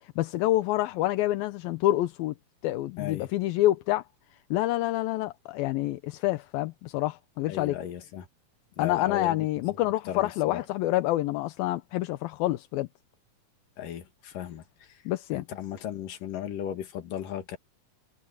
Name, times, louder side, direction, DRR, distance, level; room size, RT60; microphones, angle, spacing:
voice 1, 0.2-2.3 2.6-4.0 4.5-7.8 8.8-12.9 15.1-15.4, left 16 dB, 85° left, 2.6 m, -27 dB
voice 2, 3.0-3.3 7.5-8.3 8.8-9.5 9.8-10.7 13.8-15.0 15.3-17.6, left 10 dB, 65° left, 3.5 m, -36 dB
omnidirectional pair, 4.2 m